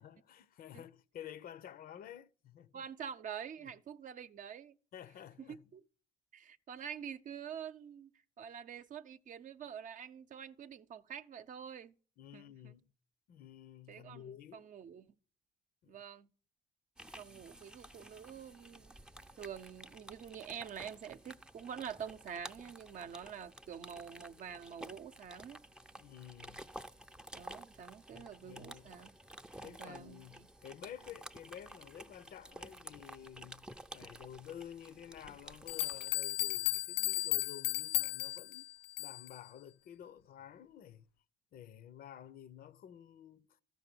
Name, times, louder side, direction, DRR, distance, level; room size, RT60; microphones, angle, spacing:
voice 1, 0.0-2.8 3.6-3.7 4.9-5.6 12.2-12.9 13.3-14.7 15.8-16.0 26.0-26.6 28.1-28.9 29.6-38.7 39.0-41.1 41.5-43.6, left 10 dB, 60° left, 0.8 m, -51 dB
voice 2, 2.7-4.8 5.5-5.8 6.3-8.1 8.4-12.0 12.3-12.8 13.9-15.1 15.9-16.3 17.2-19.0 19.4-25.6 27.3-29.1 29.6-30.5, right 8 dB, 50° right, 0.8 m, -47 dB
sound 1, 17.0-36.1, right 1 dB, 5° right, 0.6 m, -52 dB
sound 2, 35.2-35.3 35.7-39.4, left 16 dB, 90° left, 0.5 m, -35 dB
13.5 x 6.4 x 6.8 m
cardioid pair, 110°, 17 cm